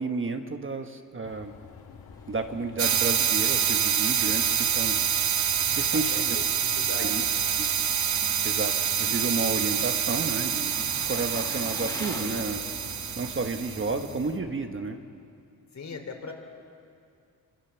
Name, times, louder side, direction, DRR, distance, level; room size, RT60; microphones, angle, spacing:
voice 1, 0.0-1.5 2.3-5.0 5.8-6.4 7.0-7.2 7.6-7.7 8.4-12.6 13.1-15.0, right 3 dB, 35° right, 6 dB, 1.2 m, -31 dB
sound 1, 1.2-14.5, left 6 dB, 75° left, 2.0 m, -48 dB
Engine, 1.6-15.2, left 1 dB, 10° left, 3.4 m, -46 dB
sound 2, 2.8-14.1, right 8 dB, 50° right, 0.8 m, -26 dB
voice 2, 5.6-6.5 6.8-7.5 15.7-16.3, left 4 dB, 50° left, 3 dB, 3.5 m, -39 dB
26.5 x 25.5 x 7.1 m, 2.4 s
wide cardioid pair, 145°, 36 cm